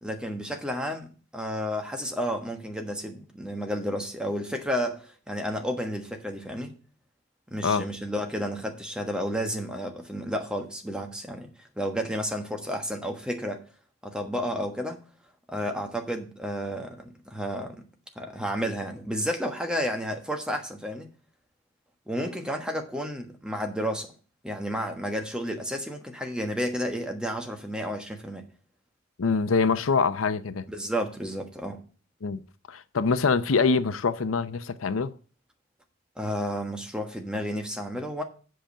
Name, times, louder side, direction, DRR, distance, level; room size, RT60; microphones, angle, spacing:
voice 1, 0.0-1.1 1.3-6.7 7.5-11.5 11.8-13.6 14.0-15.0 15.5-17.8 18.2-21.1 22.1-24.1 24.4-28.4 30.7-31.8 36.2-38.2, equal, 5° right, 1.2 m, -31 dB
voice 2, 29.2-30.7 32.2-32.4 32.7-35.1, left 4 dB, 85° left, 0.7 m, -24 dB
7.9 x 5.1 x 7.3 m
head